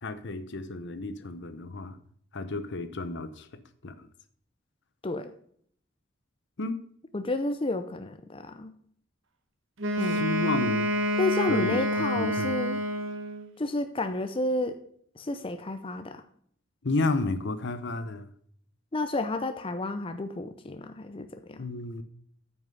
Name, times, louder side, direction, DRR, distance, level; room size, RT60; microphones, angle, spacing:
voice 1, 0.0-2.0 2.3-3.5 3.8-4.1 6.6-6.8 10.2-10.9 11.5-11.8 12.2-12.5 16.8-18.3 21.6-22.0, left 2 dB, 60° left, 12 dB, 0.9 m, -31 dB
voice 2, 7.1-8.7 10.0-10.3 11.2-12.8 13.6-14.8 15.2-16.2 18.9-21.7, left 2 dB, 25° left, 8 dB, 0.6 m, -31 dB
Wind instrument woodwind instrument, 9.8-13.5, equal, 70° right, 1.3 m, -28 dB
9.2 x 6.0 x 5.3 m, 0.62 s
head